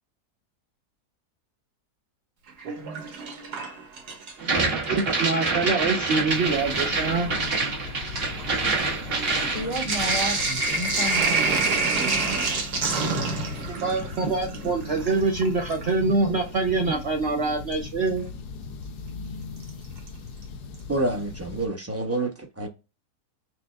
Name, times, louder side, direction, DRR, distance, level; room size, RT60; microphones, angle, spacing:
Sink (filling or washing), 2.5-4.5 4.8-5.7 6.5-6.6 6.8-16.0 17.7-17.8 19.6-20.1 20.4-20.5 20.7-20.8, right 3 dB, 80° right, 1.7 m, -28 dB
sound 1, 4.4-11.0 11.2-12.2, right 3 dB, 40° right, 1.2 m, -27 dB
voice 1, 4.4-7.3 13.7-18.3, right 3 dB, 55° right, 0.7 m, -25 dB
sound 2, 6.3-21.7, left 5 dB, 80° left, 1.2 m, -39 dB
voice 2, 9.5-11.9, equal, 35° left, 0.7 m, -32 dB
voice 3, 20.9-22.7, right 2 dB, 15° right, 0.6 m, -28 dB
5.9 x 2.2 x 3.3 m
omnidirectional pair, 1.7 m